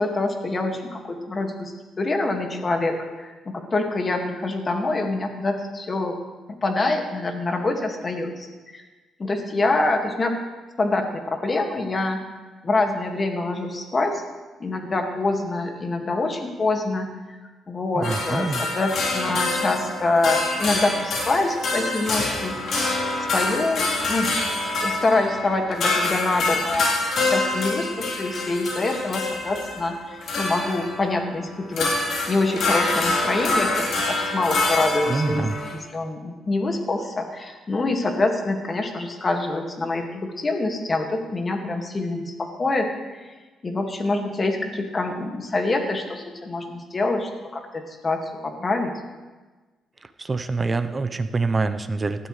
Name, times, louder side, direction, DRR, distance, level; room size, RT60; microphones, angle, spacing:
voice 1, 0.0-6.2 6.6-8.8 9.2-10.4 10.8-12.2 12.6-14.2 14.6-17.4 17.7-22.6 23.3-24.3 24.8-26.9 27.2-32.0 32.3-35.4 35.7-43.3 43.6-48.9, left 2 dB, 30° left, 4 dB, 2.1 m, -25 dB
voice 2, 17.9-18.6 35.1-35.6 50.2-52.3, right 3 dB, 30° right, 9 dB, 0.9 m, -25 dB
sound 1, 18.0-35.7, left 2 dB, 65° left, 3.8 m, -26 dB
18.5 x 13.0 x 3.3 m, 1.3 s
cardioid pair, 90°, 0 cm